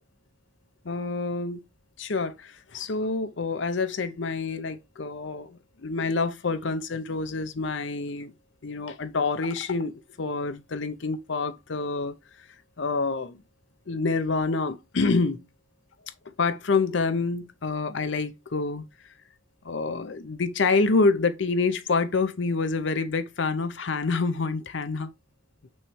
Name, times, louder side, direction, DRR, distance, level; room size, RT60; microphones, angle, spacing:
voice 1, 0.8-1.6 2.0-8.3 8.6-12.2 12.8-13.4 13.9-15.4 16.4-18.8 19.6-25.1, left 4 dB, 65° left, 0.6 m, -27 dB
6.3 x 3.2 x 4.6 m
head